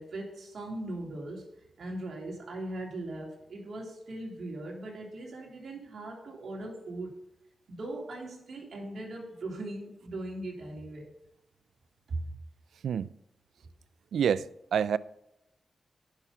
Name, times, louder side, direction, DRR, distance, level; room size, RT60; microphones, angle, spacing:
voice 1, 0.0-1.5 1.8-7.2 7.7-11.1 12.1-12.3, right 2 dB, 70° right, 3.2 m, -39 dB
voice 2, 14.1-14.5 14.7-15.0, right 8 dB, 90° right, 0.3 m, -26 dB
10.5 x 5.9 x 5.5 m
cardioid pair, 70°, 0 cm